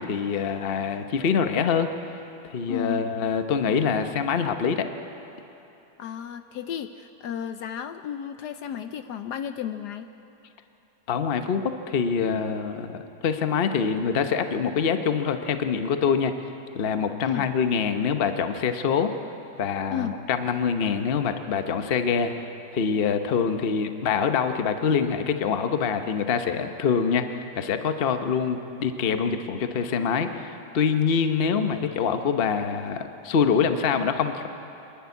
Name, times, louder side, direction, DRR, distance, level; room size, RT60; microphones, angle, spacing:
voice 1, 0.0-1.9 2.5-4.9 11.1-16.3 16.7-19.1 19.6-34.5, left 6 dB, 45° left, 7 dB, 0.8 m, -25 dB
voice 2, 2.7-3.2 6.0-10.1 17.2-17.5 19.9-20.2, left 9 dB, 70° left, 9 dB, 1.1 m, -33 dB
25.5 x 11.0 x 9.6 m, 3.0 s
omnidirectional pair, 2.0 m